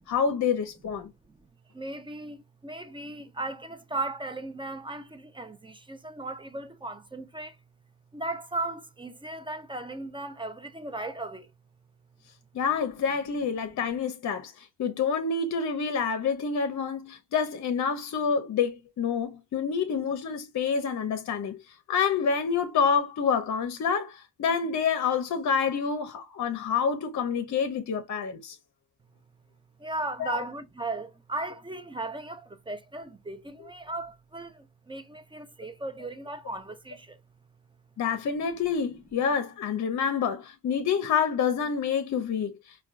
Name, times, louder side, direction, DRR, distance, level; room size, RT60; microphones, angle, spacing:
voice 1, 0.1-1.1 12.5-21.6 21.9-28.6 30.2-30.4 38.0-42.8, left 6 dB, 50° left, 0.6 m, -27 dB
voice 2, 1.7-7.6 8.1-11.5 29.8-37.2, right 2 dB, 15° right, 0.5 m, -36 dB
4.4 x 2.3 x 2.4 m
supercardioid pair, 70°, 38 cm